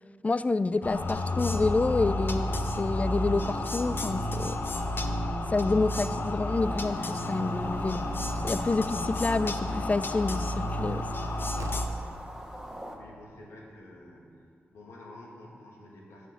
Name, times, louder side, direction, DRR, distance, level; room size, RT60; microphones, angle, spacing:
voice 1, 0.2-4.6 5.5-8.1 8.4-11.1, left 3 dB, 30° left, 15 dB, 0.3 m, -28 dB
sound 1, 0.8-11.9, left 1 dB, 50° left, 0.8 m, -31 dB
sound 2, 6.5-12.9, right 1 dB, 10° right, 1.5 m, -46 dB
Slam, 11.5-12.1, right 6 dB, 80° right, 0.4 m, -46 dB
voice 2, 11.8-12.2 12.9-14.3 14.7-16.3, left 1 dB, 90° left, -2 dB, 1.6 m, -49 dB
7.5 x 6.6 x 6.6 m, 2.4 s
cardioid pair, 45°, 5 cm